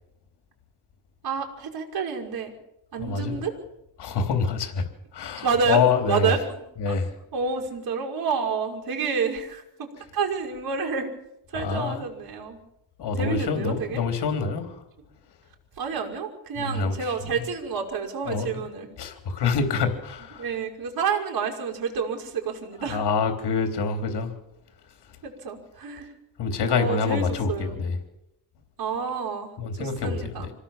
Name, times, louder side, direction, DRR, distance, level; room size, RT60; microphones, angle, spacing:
voice 1, 1.2-2.5 2.9-3.6 5.4-6.9 7.3-11.1 11.5-12.6 13.2-14.1 15.8-18.9 20.4-23.0 25.2-26.1 26.7-27.8 28.8-30.5, right 5 dB, 60° right, 1 dB, 5.6 m, -29 dB
voice 2, 3.0-3.4 4.0-4.8 5.1-6.3 6.8-7.1 11.5-12.0 13.0-14.8 16.6-17.1 18.3-18.6 19.0-20.4 22.9-24.3 26.4-28.0 29.6-30.5, left 5 dB, 75° left, 5 dB, 3.7 m, -26 dB
26.0 x 17.5 x 7.4 m, 0.83 s
cardioid pair, 135°, 40 cm